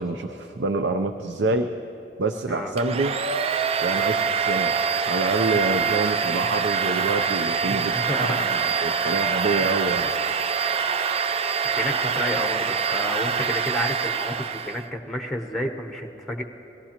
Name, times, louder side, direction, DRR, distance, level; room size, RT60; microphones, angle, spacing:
voice 1, 0.0-1.7 2.2-3.2 3.8-4.7 5.1-10.1, right 3 dB, 85° right, 6 dB, 0.6 m, -26 dB
Domestic sounds home sounds, 2.8-14.9, right 6 dB, 35° right, 0.3 m, -25 dB
voice 2, 7.7-8.5 9.2-9.9 11.7-16.4, left 1 dB, 5° left, 4 dB, 0.7 m, -31 dB
23.5 x 17.5 x 2.9 m, 2.8 s
head